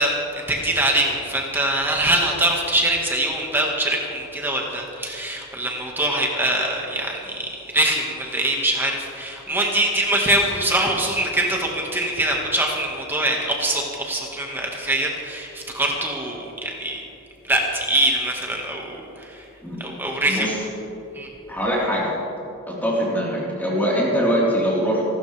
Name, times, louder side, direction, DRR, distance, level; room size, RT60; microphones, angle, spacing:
voice 1, 0.0-17.0 17.4-19.5 19.8-20.6 21.1-21.3, right 1 dB, 10° right, -1 dB, 1.7 m, -23 dB
voice 2, 20.3-20.6 21.5-22.1 22.7-25.0, equal, 10° left, -7 dB, 4.0 m, -22 dB
26.5 x 13.0 x 3.4 m, 2.9 s
head